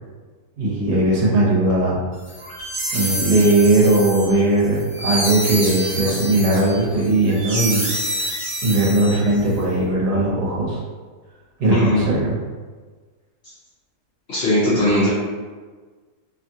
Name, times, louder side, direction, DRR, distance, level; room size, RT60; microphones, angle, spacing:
voice 1, 0.6-2.0 2.9-7.8 8.6-10.8 11.6-12.4, right 2 dB, 80° right, -6 dB, 1.5 m, -18 dB
sound 1, 2.3-9.5, right 1 dB, 45° right, 1.0 m, -27 dB
voice 2, 11.7-12.1 14.3-15.1, left 1 dB, 55° left, -8 dB, 0.8 m, -19 dB
3.2 x 2.3 x 2.7 m, 1.4 s
omnidirectional pair, 1.7 m